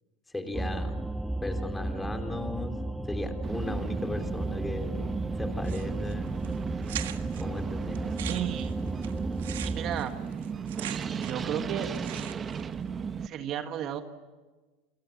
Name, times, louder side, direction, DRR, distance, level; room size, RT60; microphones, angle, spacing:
voice 1, 0.3-1.0 1.4-5.0 5.4-6.3 7.3-8.1, left 2 dB, 10° left, 6 dB, 3.7 m, -36 dB
sound 1, 0.5-10.0, right 1 dB, 5° right, 0.8 m, -34 dB
sound 2, 3.4-13.3, right 6 dB, 30° right, 1.1 m, -35 dB
sound 3, 5.6-6.1 6.4-6.5 6.9-7.4 8.0-11.5 11.8-12.6, right 13 dB, 85° right, 1.5 m, -40 dB
voice 2, 8.3-8.8 9.6-10.1 11.1-11.9 13.2-14.0, right 10 dB, 50° right, 7 dB, 1.8 m, -33 dB
29.0 x 23.0 x 7.4 m, 1.3 s
supercardioid pair, 105°, 0 cm